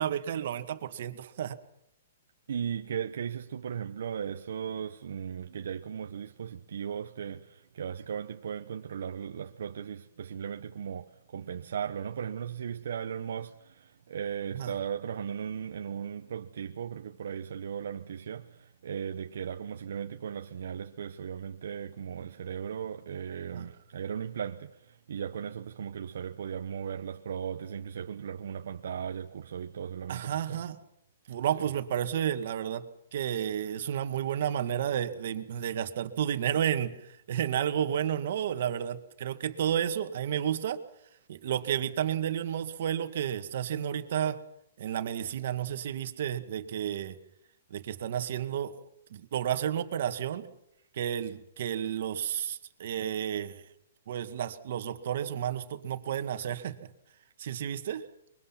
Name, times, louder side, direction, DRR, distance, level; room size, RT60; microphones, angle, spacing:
voice 1, 0.0-1.6 14.5-14.7 23.5-23.7 30.1-30.8 31.3-40.8 41.3-44.4 44.8-47.2 47.7-48.8 49.1-50.5 50.9-53.6 54.1-56.8 57.4-58.1, right 9 dB, 55° right, 1.9 m, -31 dB
voice 2, 2.5-30.6, right 8 dB, 70° right, 1.0 m, -37 dB
24.0 x 22.5 x 5.9 m
hypercardioid pair, 160°, 0 cm